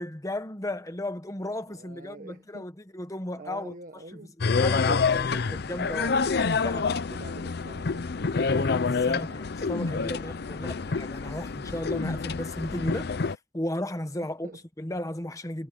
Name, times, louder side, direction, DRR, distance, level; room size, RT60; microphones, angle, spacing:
voice 1, 0.0-3.7 4.6-7.0 9.1-9.4 9.7-13.1 13.5-14.5 14.8-15.7, left 1 dB, 20° left, 1.2 m, -35 dB
voice 2, 1.7-2.7 3.3-4.3 7.1-10.1 14.2-14.6, right 2 dB, 50° right, 1.3 m, -46 dB
sound 1, 4.4-13.4, left 4 dB, 60° left, 0.6 m, -27 dB
head